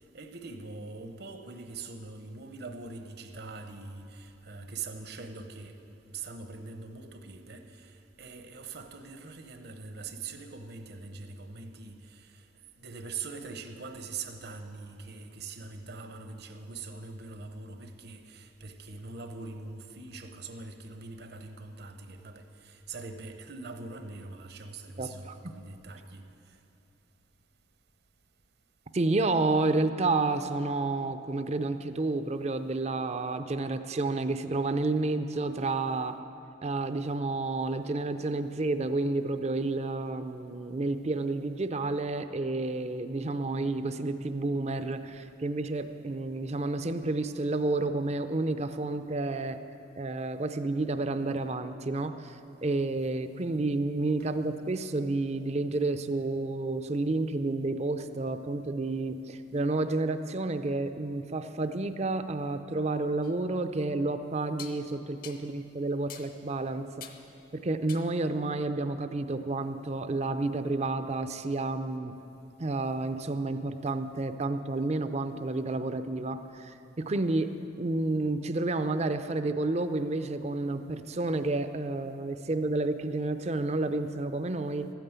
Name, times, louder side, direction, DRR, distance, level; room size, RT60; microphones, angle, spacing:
voice 1, 0.1-5.7 6.0-12.4 12.8-26.2, right 4 dB, 60° right, 7 dB, 1.0 m, -43 dB
voice 2, 25.0-25.5 28.9-36.2 36.6-49.6 50.0-67.1 67.5-72.2 72.6-77.5 77.8-84.9, right 2 dB, 35° right, 10 dB, 0.5 m, -30 dB
sound 1, 63.2-63.4 64.6-64.8 65.2-65.5 66.1-66.3 67.0-67.3 67.9-68.2, left 7 dB, 50° left, 0.9 m, -45 dB
13.0 x 9.2 x 8.1 m, 2.8 s
head